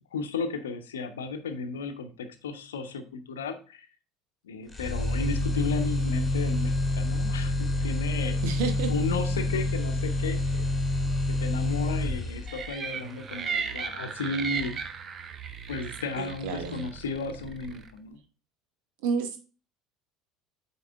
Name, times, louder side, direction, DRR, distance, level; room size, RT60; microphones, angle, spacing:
voice 1, 0.1-3.9 4.4-8.4 8.9-10.4 11.3-14.9 15.7-18.2, left 4 dB, 70° left, 8 dB, 0.8 m, -34 dB
sound 1, 4.7-12.7, left 2 dB, 10° left, 2.2 m, -27 dB
voice 2, 8.4-8.9 16.2-16.9 19.0-19.4, right 5 dB, 60° right, 7 dB, 1.2 m, -30 dB
sound 2, 12.5-17.9, right 6 dB, 35° right, 0.8 m, -36 dB
8.4 x 4.5 x 3.5 m, 0.36 s
figure-of-eight pair, 65°, 0 cm